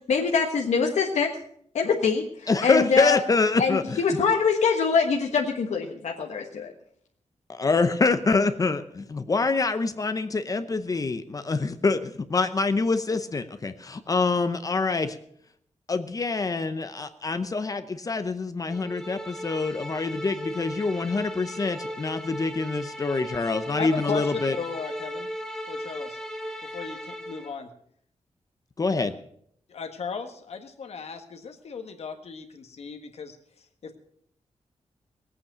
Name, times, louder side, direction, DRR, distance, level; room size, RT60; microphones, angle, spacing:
voice 1, 0.1-1.3 1.7-3.2 3.6-6.7, left 5 dB, 90° left, 1 dB, 1.4 m, -24 dB
voice 2, 2.5-4.0 7.5-15.1 15.9-24.6 28.8-29.1, left 3 dB, 30° left, 10 dB, 0.7 m, -25 dB
sound 1, 18.7-27.5, equal, 5° left, 1.4 m, -37 dB
voice 3, 23.7-25.3 25.7-26.2 26.6-27.7 29.7-34.0, left 5 dB, 65° left, 5 dB, 1.6 m, -36 dB
18.5 x 8.6 x 6.7 m, 0.67 s
wide cardioid pair, 165°, 11 cm